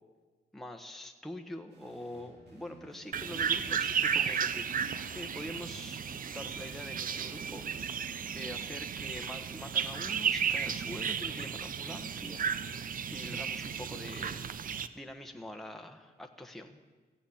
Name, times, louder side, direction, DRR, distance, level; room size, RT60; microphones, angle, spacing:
voice 1, 0.5-6.0 6.3-7.7 8.3-12.7 13.1-14.4 14.9-16.8, left 1 dB, ahead, 3 dB, 1.1 m, -44 dB
sound 1, 1.7-13.2, right 2 dB, 80° right, 3.1 m, -56 dB
sound 2, 3.1-14.9, right 7 dB, 55° right, 0.7 m, -34 dB
15.5 x 7.9 x 8.6 m, 1.3 s
cardioid pair, 100°, 17 cm